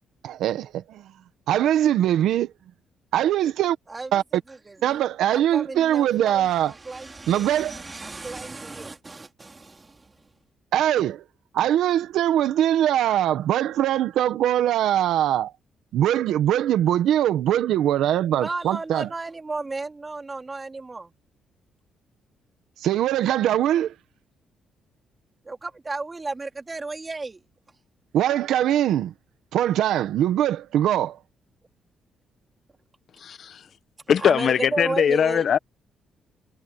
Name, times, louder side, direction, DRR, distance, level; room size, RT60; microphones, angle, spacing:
voice 1, 0.2-1.1 1.5-2.5 3.1-3.8 4.1-4.2 4.8-6.7 7.3-7.8 10.7-11.2 11.5-15.5 15.9-19.1 22.8-23.9 28.1-29.1 29.5-31.2, right 11 dB, 80° right, 1.5 m, -22 dB
voice 2, 4.5-5.1 5.3-10.2 18.3-21.1 25.5-27.4 34.2-35.5, right 3 dB, 25° right, 3.8 m, -33 dB
voice 3, 33.2-33.7 34.1-35.6, left 8 dB, 60° left, 1.1 m, -21 dB
cardioid pair, 90°, 0 cm